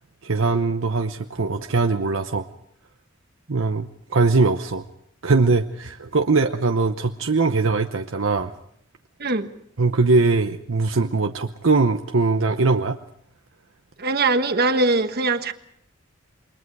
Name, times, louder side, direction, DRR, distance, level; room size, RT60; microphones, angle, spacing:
voice 1, 0.2-2.5 3.5-4.8 5.2-8.5 9.8-13.0, right 3 dB, 70° right, 6 dB, 0.9 m, -21 dB
voice 2, 14.0-15.5, right 3 dB, 50° right, 8 dB, 1.4 m, -21 dB
28.5 x 22.5 x 4.8 m, 0.67 s
head